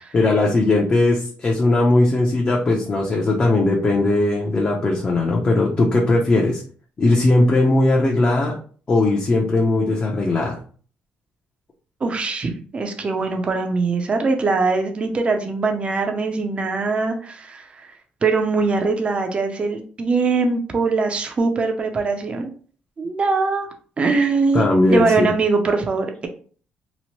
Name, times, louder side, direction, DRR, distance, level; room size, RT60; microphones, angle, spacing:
voice 1, 0.1-6.6 7.0-8.6 8.9-10.6 24.5-25.3, left 2 dB, 30° left, -2 dB, 0.5 m, -18 dB
voice 2, 12.0-17.9 18.2-22.5 23.0-23.7 24.0-26.3, right 4 dB, 30° right, 4 dB, 0.5 m, -22 dB
2.9 x 2.1 x 2.9 m, 0.43 s
cardioid pair, 110°, 4 cm